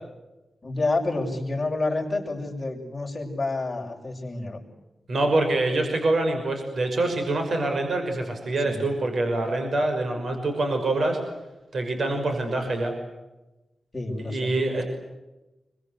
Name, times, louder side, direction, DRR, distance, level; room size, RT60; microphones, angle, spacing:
voice 1, 0.6-4.6 8.6-8.8 13.9-14.5, left 2 dB, 20° left, -1 dB, 6.8 m, -29 dB
voice 2, 5.1-11.2 11.7-12.9 14.2-14.8, right 2 dB, 55° right, 5 dB, 5.9 m, -25 dB
27.0 x 24.0 x 8.1 m, 1.0 s
wide cardioid pair, 135°, 0 cm